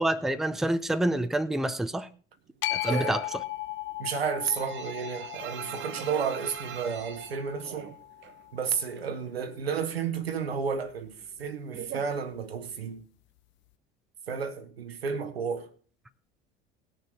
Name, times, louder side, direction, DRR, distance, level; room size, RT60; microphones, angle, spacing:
voice 1, 0.0-2.1 2.7-3.2, right 1 dB, ahead, 0.6 m, -27 dB
sound 1, 2.6-8.8, left 17 dB, 40° left, 0.5 m, -37 dB
sound 2, 2.8-3.2 3.5-8.4 8.7-9.7 10.0-12.8, right 10 dB, 40° right, 0.9 m, -43 dB
voice 2, 4.0-7.9 8.5-13.1 14.3-15.7, right 6 dB, 80° right, 1.2 m, -32 dB
19.0 x 6.5 x 4.4 m
figure-of-eight pair, 65°, 30 cm